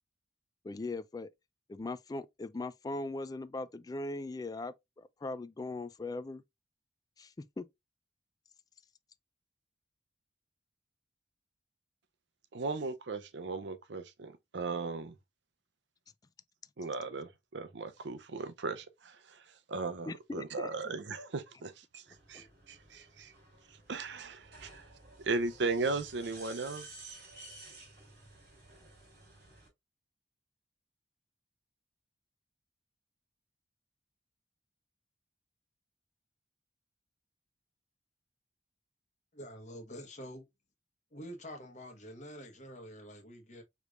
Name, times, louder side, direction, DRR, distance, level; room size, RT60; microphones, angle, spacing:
voice 1, 0.6-1.3 1.7-6.4 7.2-7.7 20.1-20.7 22.3-22.5, left 2 dB, 20° left, 0.3 m, -40 dB
voice 2, 12.5-15.2 16.8-23.3 23.7-24.9 25.2-26.9, right 3 dB, 80° right, 0.6 m, -37 dB
sound 1, 22.0-29.7, right 2 dB, 60° right, 3.0 m, -53 dB
voice 3, 39.3-40.5 41.1-43.6, equal, 40° left, 1.2 m, -47 dB
4.9 x 3.3 x 2.4 m
head